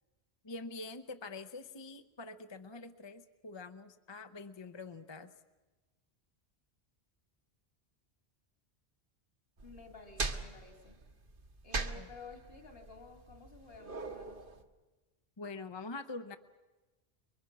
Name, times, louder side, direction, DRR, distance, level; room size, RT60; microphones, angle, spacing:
voice 1, 0.4-5.3 11.9-12.1 15.4-16.4, left 3 dB, 30° left, 8 dB, 0.8 m, -45 dB
voice 2, 9.6-11.0 11.6-14.4, left 4 dB, 65° left, 4 dB, 3.2 m, -53 dB
sound 1, 9.6-14.6, right 3 dB, 55° right, 1.5 m, -41 dB
29.0 x 23.5 x 6.1 m, 1.2 s
omnidirectional pair, 1.1 m